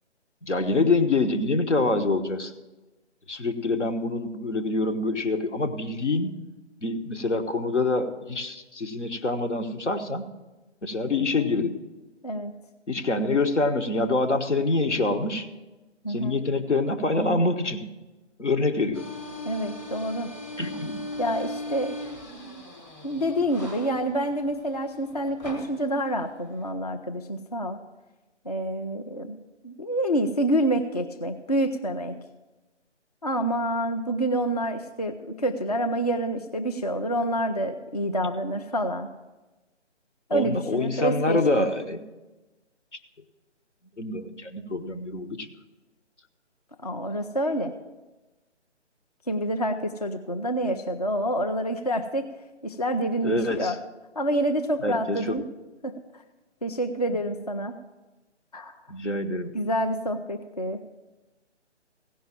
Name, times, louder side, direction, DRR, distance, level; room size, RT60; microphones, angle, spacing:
voice 1, 0.4-2.5 3.3-6.3 6.8-10.2 10.8-11.7 12.9-15.5 16.1-17.9 18.4-19.0 20.6-21.0 40.3-42.1 44.0-45.5 53.2-53.8 54.8-55.4 58.9-59.6, left 3 dB, 75° left, 6 dB, 1.3 m, -26 dB
voice 2, 16.0-16.4 19.4-20.3 21.2-22.0 22.3-22.6 23.0-27.8 28.5-29.4 29.6-32.1 33.2-39.1 40.3-41.6 46.8-47.7 49.3-52.3 52.6-53.8 54.2-55.4 55.8-55.9 56.6-57.8 58.5-58.8 59.5-60.8, right 1 dB, 35° left, 6 dB, 0.4 m, -27 dB
sound 1, 18.9-26.7, left 1 dB, 15° left, 1.0 m, -39 dB
16.0 x 5.6 x 7.3 m, 1.1 s
figure-of-eight pair, 150°, 36 cm